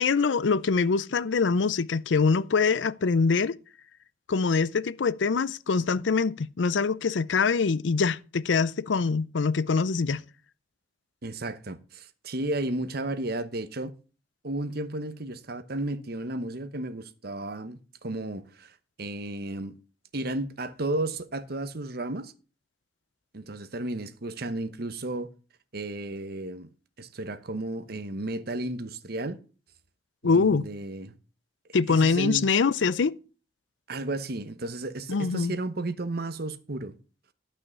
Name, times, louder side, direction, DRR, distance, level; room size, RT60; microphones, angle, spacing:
voice 1, 0.0-3.6 4.3-10.2 30.2-30.6 31.7-33.2 35.1-35.6, left 4 dB, 90° left, 0.5 m, -24 dB
voice 2, 11.2-13.9 14.4-19.8 20.1-22.3 23.3-25.3 25.7-26.7 27.0-29.4 30.2-31.1 31.9-32.5 33.9-36.9, right 2 dB, 60° right, 1.1 m, -33 dB
12.0 x 5.7 x 6.9 m
head